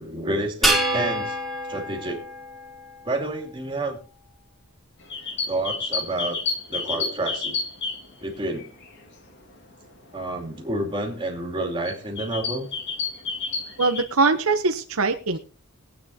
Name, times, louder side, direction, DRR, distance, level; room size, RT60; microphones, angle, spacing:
voice 1, 0.0-1.4 1.7-2.2 3.0-4.0 5.5-6.4 6.7-7.6 8.2-8.7 10.1-12.7, right 2 dB, 20° right, 1 dB, 2.6 m, -29 dB
sound 1, 0.6-3.2, right 1 dB, ahead, 2.1 m, -26 dB
sound 2, 5.0-9.0 9.5-9.7 10.7-10.8 11.3-11.6 11.8-14.0, left 4 dB, 55° left, 2.2 m, -30 dB
voice 2, 13.8-15.4, right 3 dB, 70° right, 7 dB, 0.9 m, -22 dB
21.0 x 8.9 x 2.8 m, 0.37 s
head